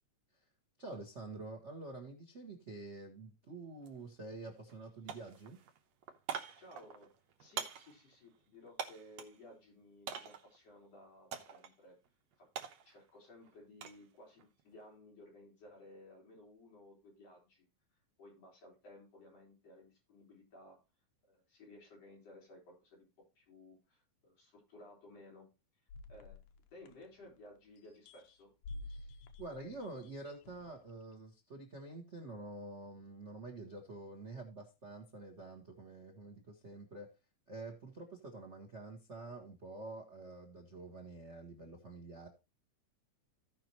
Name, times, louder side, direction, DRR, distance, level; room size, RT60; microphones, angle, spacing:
voice 1, 0.8-5.6 28.9-37.1 37.5-42.3, right 2 dB, 90° right, 3 dB, 0.6 m, -48 dB
sound 1, 3.8-4.0 4.3-4.8 5.1-9.4 10.1-10.6 11.3-11.7 12.1-14.0 14.4-14.8, right 7 dB, 70° right, 2.1 m, -45 dB
voice 2, 6.6-7.1 7.4-12.0 12.4-12.5 12.8-17.6 18.2-20.8 21.2-23.1 23.3-25.5 26.1-26.4 26.7-28.5, left 1 dB, 55° left, -2 dB, 5.0 m, -57 dB
sound 2, 25.9-27.5 27.8-30.9, left 2 dB, 85° left, 2.3 m, -50 dB
16.0 x 5.4 x 2.9 m, 0.28 s
omnidirectional pair, 3.4 m